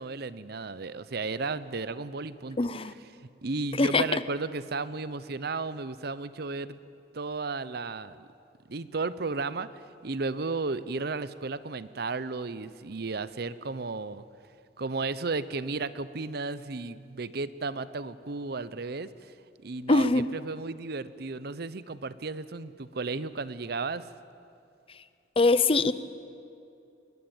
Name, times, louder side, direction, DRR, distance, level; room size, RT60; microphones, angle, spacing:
voice 1, 0.0-2.7 3.4-6.8 7.1-8.3 8.7-14.2 14.8-19.3 19.6-24.1, right 3 dB, 60° right, 16 dB, 0.8 m, -34 dB
voice 2, 2.6-2.9 3.8-4.2 19.9-20.3 25.4-25.9, left 3 dB, 30° left, 14 dB, 0.7 m, -23 dB
22.0 x 19.0 x 8.9 m, 2.6 s
head